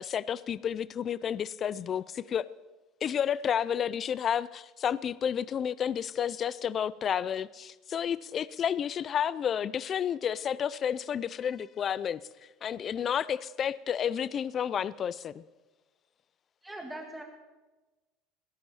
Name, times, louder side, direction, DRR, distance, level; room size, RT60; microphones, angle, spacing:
voice 1, 0.0-2.5 3.0-12.2 12.6-15.4, left 8 dB, 30° left, 0.4 m, -31 dB
voice 2, 16.6-17.2, right 1 dB, 5° right, 1.8 m, -40 dB
17.5 x 11.0 x 7.1 m
cardioid pair, 145°, 0 cm